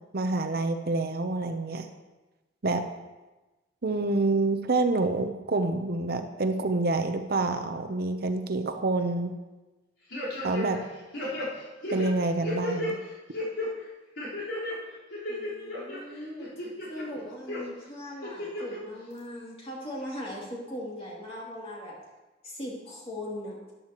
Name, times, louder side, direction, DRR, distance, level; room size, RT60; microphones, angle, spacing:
voice 1, 0.1-1.9 2.6-2.8 3.8-9.3 10.4-10.8 11.9-13.0, right 2 dB, 55° right, 7 dB, 0.7 m, -27 dB
sound 1, 10.1-10.8 11.1-12.9 13.3-13.7 14.2-14.7 15.1-16.0 16.4-17.0 17.5-17.6 18.2-18.8 19.2-19.3, left 1 dB, 85° left, 4.1 m, -33 dB
voice 2, 15.3-22.0 22.4-23.6, left 1 dB, 30° left, -4 dB, 2.7 m, -39 dB
13.0 x 10.5 x 3.0 m, 1.1 s
head